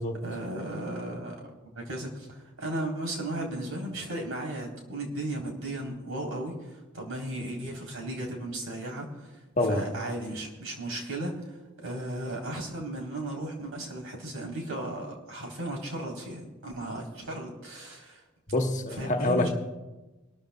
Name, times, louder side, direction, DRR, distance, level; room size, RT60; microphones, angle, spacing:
voice 1, 0.2-1.4 1.7-9.4 9.7-11.6 11.8-18.2 19.0-19.5, right 1 dB, 80° right, 3.8 m, -35 dB
voice 2, 9.6-9.9 18.5-19.5, left 1 dB, 35° left, 1.3 m, -26 dB
26.0 x 13.5 x 2.3 m
head